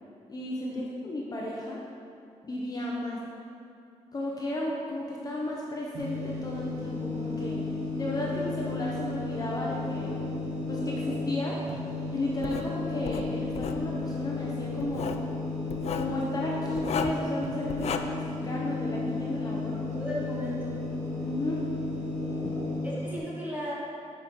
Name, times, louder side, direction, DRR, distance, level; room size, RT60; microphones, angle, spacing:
voice 1, 0.3-1.8 2.4-3.2 4.1-7.6 8.0-10.3 10.7-11.6 12.1-15.1 15.9-19.7 21.2-21.7 22.4-22.5, left 1 dB, 30° left, -3 dB, 0.7 m, -33 dB
sound 1, 5.9-23.2, left 2 dB, 80° right, 1.3 m, -33 dB
Writing, 12.4-12.7 13.1-13.8 14.8-15.3 15.7-16.1 16.8-17.3 17.7-18.0, left 7 dB, 60° left, 0.4 m, -33 dB
voice 2, 19.9-20.8 22.8-23.7, left 1 dB, 15° right, -8 dB, 1.8 m, -35 dB
7.3 x 5.2 x 4.6 m, 2.6 s
wide cardioid pair, 165°, 12 cm